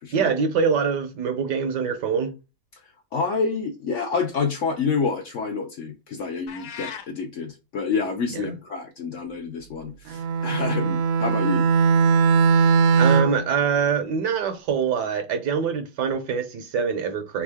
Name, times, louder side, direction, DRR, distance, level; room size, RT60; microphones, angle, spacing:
voice 1, 0.1-2.3 8.3-8.5 13.0-17.4, right 6 dB, 70° right, 1.2 m, -24 dB
voice 2, 3.1-11.7, left 5 dB, 75° left, 0.6 m, -28 dB
sound 1, 6.5-7.1, left 8 dB, 60° left, 1.0 m, -36 dB
Bowed string instrument, 10.1-13.5, right 5 dB, 90° right, 1.5 m, -19 dB
3.7 x 3.5 x 3.4 m
omnidirectional pair, 2.0 m